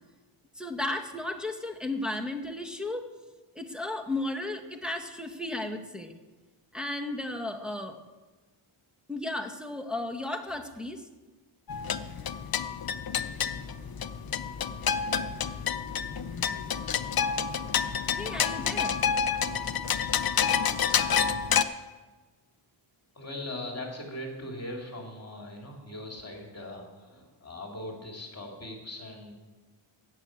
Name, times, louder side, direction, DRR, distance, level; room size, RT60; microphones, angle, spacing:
voice 1, 0.6-3.1 3.5-6.1 6.7-8.0 9.1-11.1 18.2-19.0, left 2 dB, ahead, 4 dB, 1.0 m, -34 dB
sound 1, 11.7-21.6, left 7 dB, 50° left, 0.6 m, -29 dB
sound 2, 13.3-20.1, right 1 dB, 50° right, 3.9 m, -48 dB
voice 2, 23.1-29.3, left 1 dB, 30° left, 0 dB, 2.7 m, -40 dB
14.0 x 6.2 x 8.7 m, 1.2 s
wide cardioid pair, 155°, 50 cm